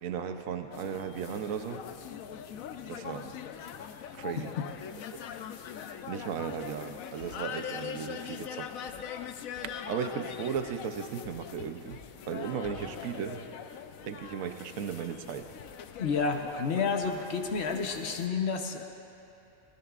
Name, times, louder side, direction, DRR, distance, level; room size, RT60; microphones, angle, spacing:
voice 1, 0.0-1.8 2.9-3.3 4.1-4.5 5.1-5.2 6.1-9.2 9.9-12.0 12.3-13.5 14.0-15.5, right 7 dB, 75° right, 7 dB, 1.1 m, -36 dB
sound 1, 0.7-18.3, left 8 dB, 80° left, 1.1 m, -42 dB
voice 2, 4.4-4.7 16.0-18.8, left 5 dB, 55° left, 4 dB, 1.1 m, -30 dB
22.5 x 19.0 x 2.4 m, 2.9 s
omnidirectional pair, 1.4 m